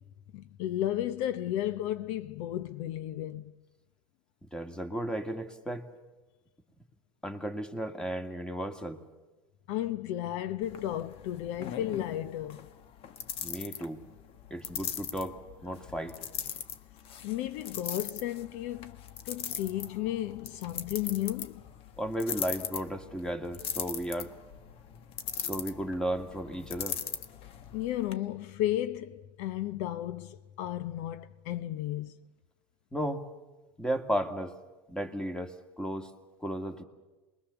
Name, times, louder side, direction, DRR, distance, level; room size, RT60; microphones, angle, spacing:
voice 1, 0.3-3.5 9.7-12.7 17.2-19.0 19.2-21.6 27.7-32.1, left 13 dB, 65° left, 0.8 m, -33 dB
voice 2, 4.5-5.9 7.2-9.0 13.4-14.0 14.5-16.1 22.0-24.3 25.4-27.0 32.9-33.3 33.8-34.5 34.9-36.1 36.4-36.8, equal, 5° left, 2.1 m, -34 dB
sound 1, 10.6-28.1, left 9 dB, 50° left, 1.4 m, -40 dB
27.5 x 21.5 x 7.0 m
supercardioid pair, 100°, 12 cm